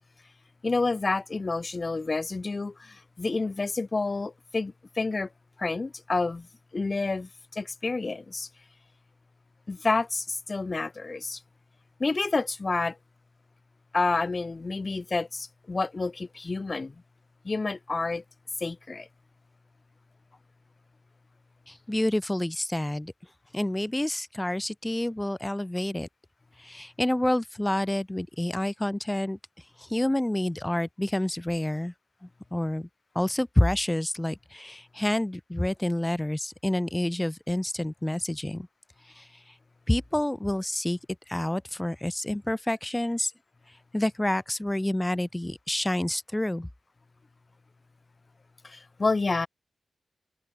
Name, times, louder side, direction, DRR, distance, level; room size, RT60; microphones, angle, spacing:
voice 1, 0.6-5.3 5.6-6.5 6.7-8.5 9.7-11.4 12.0-13.0 13.9-17.0 17.4-18.2 18.6-19.1 48.6-49.5, left 3 dB, 30° left, 1.9 m, -29 dB
voice 2, 21.7-23.1 23.5-26.1 26.6-29.4 29.8-31.9 32.5-32.9 33.2-38.7 39.2-39.3 39.9-41.0 41.3-43.3 43.9-46.7, left 1 dB, 10° left, 3.7 m, -28 dB
wide cardioid pair, 170°, 0 cm